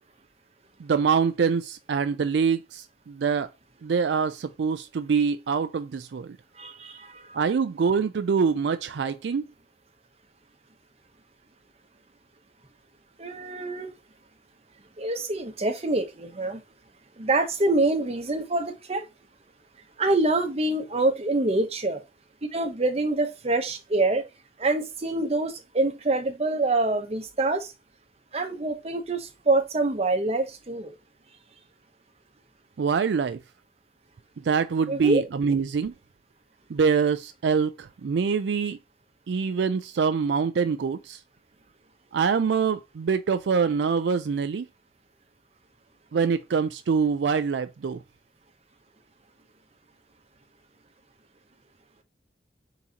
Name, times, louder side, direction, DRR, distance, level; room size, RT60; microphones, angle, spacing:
voice 1, 0.8-3.5 3.8-6.4 7.3-9.4 32.8-33.4 34.4-35.9 36.7-38.8 39.3-41.2 42.1-44.7 46.1-48.0, right 5 dB, 75° right, 0.4 m, -25 dB
voice 2, 6.6-7.4 13.2-13.9 15.0-16.6 17.2-19.1 20.0-22.0 22.5-24.2 24.6-27.7 28.3-30.9 34.9-35.2, right 2 dB, 35° right, 0.8 m, -26 dB
4.2 x 3.8 x 2.8 m
head